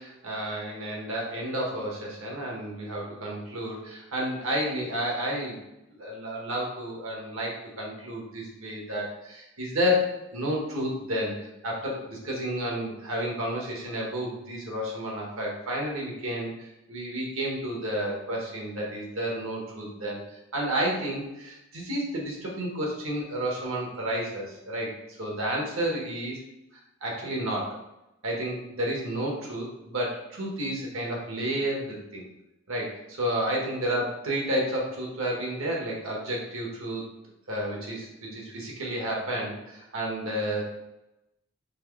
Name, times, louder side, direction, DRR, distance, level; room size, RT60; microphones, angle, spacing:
voice 1, 0.0-5.6 6.0-11.3 11.6-20.2 20.5-26.4 27.0-27.8 28.2-32.2 32.7-37.1 37.5-40.6, equal, 75° right, -2 dB, 1.3 m, -31 dB
4.6 x 3.4 x 3.1 m, 0.91 s
head